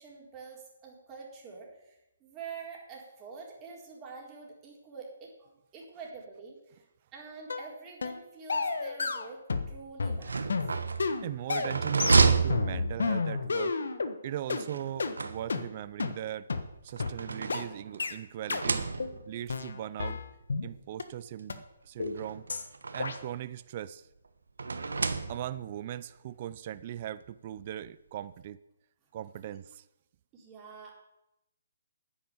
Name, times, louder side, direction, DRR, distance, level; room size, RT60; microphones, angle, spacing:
voice 1, 0.0-6.8 7.1-9.4 9.7-10.6 20.5-20.6 29.4-29.6 30.3-30.9, right 5 dB, 20° right, -2 dB, 4.0 m, -46 dB
sound 1, 7.5-7.7 8.0-8.2 8.5-9.7 10.0-14.1 14.5-14.6 15.0-15.1 15.5-15.6 16.0-16.1 16.5-16.6 17.0-17.1 17.5-17.6 18.0-18.1 18.5-18.6 19.0-19.2 19.5-20.7 21.0-21.1 21.5-21.6 22.0-22.2 22.5-22.7 23.0-23.2, left 4 dB, 75° left, 1.4 m, -31 dB
sound 2, 10.1-13.4 14.7-15.9 16.7-18.1 18.4-19.4 20.3-20.4 20.7-20.8 22.0-23.4 24.6-25.8, right 4 dB, 80° right, 1.2 m, -30 dB
voice 2, 11.2-13.8 14.2-16.5 16.8-18.9 19.3-20.2 20.6-22.4 22.9-24.1 25.3-28.6 29.1-29.8, right 11 dB, 40° right, 16 dB, 0.5 m, -39 dB
10.0 x 9.7 x 7.2 m, 0.88 s
hypercardioid pair, 145°, 0 cm